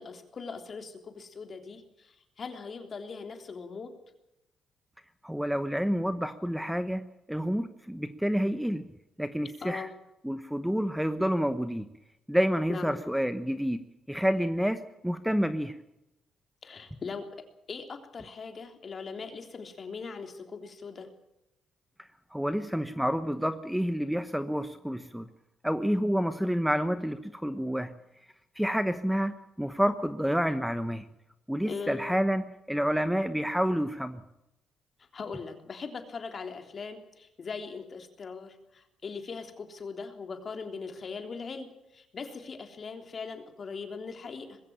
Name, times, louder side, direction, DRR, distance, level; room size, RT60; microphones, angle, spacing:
voice 1, 0.0-3.9 9.6-9.9 12.7-13.0 16.6-21.1 31.7-32.1 35.1-44.6, left 5 dB, 45° left, 6 dB, 3.5 m, -40 dB
voice 2, 5.2-8.9 9.2-9.9 10.2-11.9 12.3-13.8 14.1-15.8 22.3-25.3 25.6-27.9 28.6-31.0 31.5-34.2, equal, ahead, 11 dB, 1.1 m, -29 dB
21.0 x 16.0 x 8.9 m, 0.87 s
cardioid pair, 90°, 0 cm